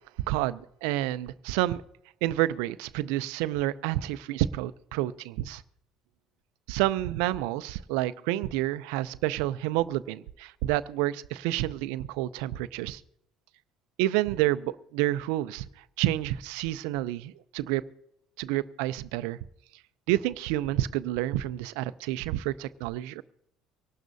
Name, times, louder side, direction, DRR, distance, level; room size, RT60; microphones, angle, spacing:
voice 1, 0.3-1.8 2.2-5.6 6.7-13.0 14.0-15.6 16.0-17.8 18.4-19.4 20.1-23.2, right 15 dB, 85° right, 16 dB, 0.4 m, -29 dB
25.0 x 12.0 x 2.7 m, 0.77 s
supercardioid pair, 85°, 0 cm